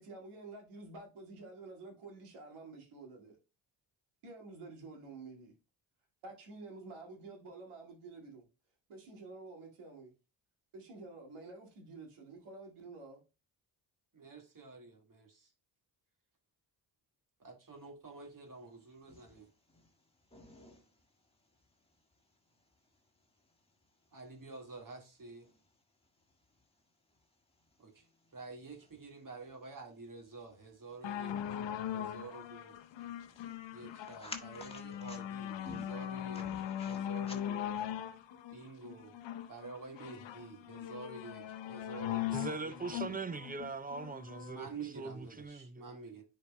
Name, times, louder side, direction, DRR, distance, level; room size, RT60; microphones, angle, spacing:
voice 1, 0.0-3.4 4.2-5.5 6.2-8.4 8.9-10.1 10.7-13.2, right 3 dB, 80° right, 2.2 m, -50 dB
voice 2, 14.1-15.5 17.4-19.5 24.1-25.5 27.8-27.9 28.3-31.6 31.9-32.7 33.7-37.7 38.5-39.1 39.5-43.1 44.5-46.3, right 3 dB, 40° right, 1.9 m, -49 dB
sound 1, 18.5-37.9, left 2 dB, 10° left, 1.6 m, -57 dB
sound 2, 31.0-44.6 45.4-45.5, left 10 dB, 60° left, 0.8 m, -40 dB
voice 3, 42.3-45.9, right 4 dB, 20° right, 0.6 m, -41 dB
10.0 x 4.2 x 2.2 m
supercardioid pair, 50°, 49 cm